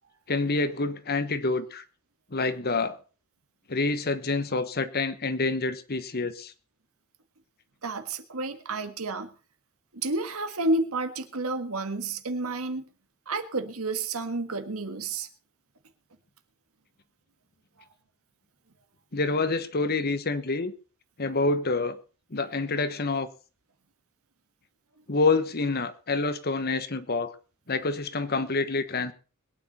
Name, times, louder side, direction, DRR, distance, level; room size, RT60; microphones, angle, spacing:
voice 1, 0.3-1.8 2.3-3.0 3.7-6.5 19.1-20.7 21.2-22.0 22.3-23.3 25.1-27.3 27.7-29.1, left 3 dB, 45° left, 1.1 m, -27 dB
voice 2, 7.8-9.3 9.9-12.9 13.3-15.3, right 2 dB, 75° right, 1.7 m, -30 dB
21.5 x 9.4 x 4.3 m
head